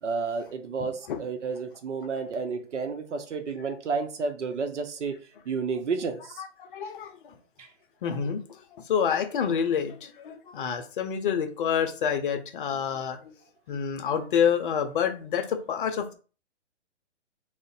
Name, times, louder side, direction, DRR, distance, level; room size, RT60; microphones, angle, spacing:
voice 1, 0.0-6.4 7.6-7.7, right 4 dB, 80° right, 0.6 m, -31 dB
voice 2, 0.8-1.2 6.6-7.4 8.0-13.3 13.7-16.1, left 7 dB, 45° left, 0.6 m, -28 dB
2.5 x 2.0 x 3.8 m
hypercardioid pair, 135°, 35 cm